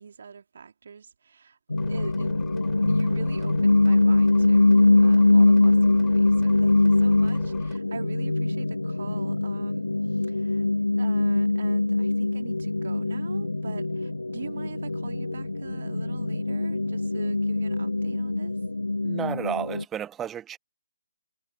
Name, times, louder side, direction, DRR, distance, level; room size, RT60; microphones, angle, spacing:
voice 1, 0.0-1.6 1.9-10.6 11.0-18.6, right 6 dB, 55° right, 2.7 m, -43 dB
sound 1, 1.7-19.8, left 2 dB, 80° left, 1.2 m, -23 dB
sound 2, 1.8-7.8, left 11 dB, 15° left, 5.2 m, -48 dB
voice 2, 19.0-20.6, right 9 dB, 10° right, 1.0 m, -32 dB
figure-of-eight pair, 135°, 0 cm